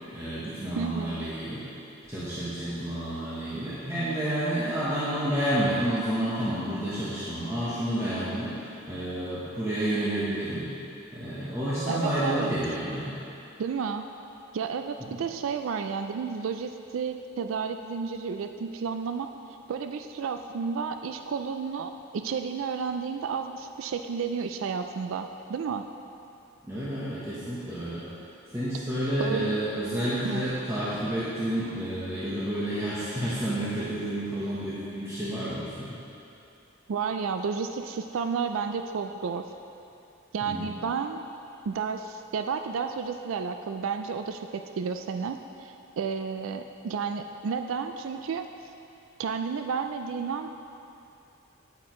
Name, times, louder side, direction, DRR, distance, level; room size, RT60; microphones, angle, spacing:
voice 1, 0.1-1.7 2.0-10.7 11.1-13.2 15.0-15.2 26.7-28.0 28.5-36.0 40.4-40.7, right 1 dB, 15° right, -11 dB, 1.2 m, -30 dB
voice 2, 0.8-1.3 11.9-12.5 13.6-14.0 14.5-19.3 19.7-25.8 29.2-29.6 30.2-30.4 36.9-39.5 40.3-41.2 41.7-48.5 49.2-50.5, right 5 dB, 85° right, 7 dB, 0.4 m, -31 dB
9.5 x 8.7 x 3.1 m, 2.8 s
head